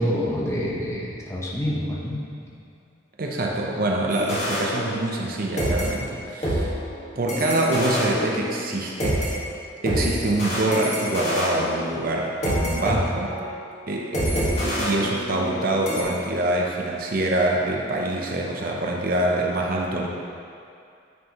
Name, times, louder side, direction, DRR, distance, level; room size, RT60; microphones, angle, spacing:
voice 1, 0.0-2.6, equal, 15° left, -5 dB, 0.9 m, -27 dB
voice 2, 3.2-6.8 7.2-9.3 9.8-13.3 13.9-20.1, right 1 dB, 50° right, -1 dB, 0.6 m, -25 dB
sound 1, 4.1-5.3 5.6-9.3 9.9-13.0 13.3-13.5 14.1-15.6 15.9-16.0, equal, 40° left, 1.5 m, -27 dB
9.2 x 4.5 x 2.9 m, 2.5 s
head